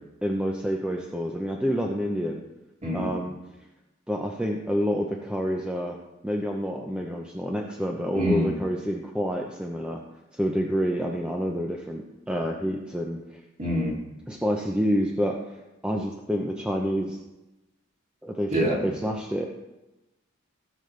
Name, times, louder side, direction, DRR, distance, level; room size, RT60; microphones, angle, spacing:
voice 1, 0.2-2.4 2.9-3.3 4.1-6.0 6.2-10.0 10.3-13.4 14.3-15.6 15.8-17.2 18.2-19.5, equal, 5° right, 0 dB, 0.7 m, -28 dB
voice 2, 2.8-3.1 8.1-8.5 13.6-14.0 18.5-18.8, equal, 35° right, -4 dB, 2.8 m, -25 dB
16.0 x 7.1 x 3.3 m, 1.0 s
head